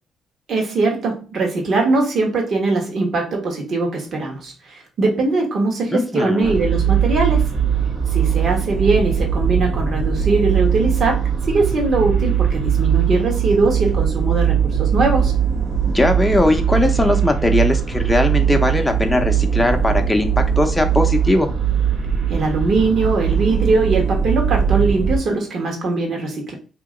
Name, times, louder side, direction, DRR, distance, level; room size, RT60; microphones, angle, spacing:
voice 1, 0.5-4.5 5.0-7.4 8.1-15.3 22.3-26.5, right 3 dB, 60° right, 2 dB, 1.4 m, -20 dB
voice 2, 5.9-6.5 15.9-21.5, left 1 dB, 10° left, 4 dB, 0.7 m, -19 dB
sound 1, 6.4-25.2, right 8 dB, 75° right, 1.1 m, -20 dB
2.9 x 2.8 x 3.7 m, 0.37 s
cardioid pair, 90°, 0 cm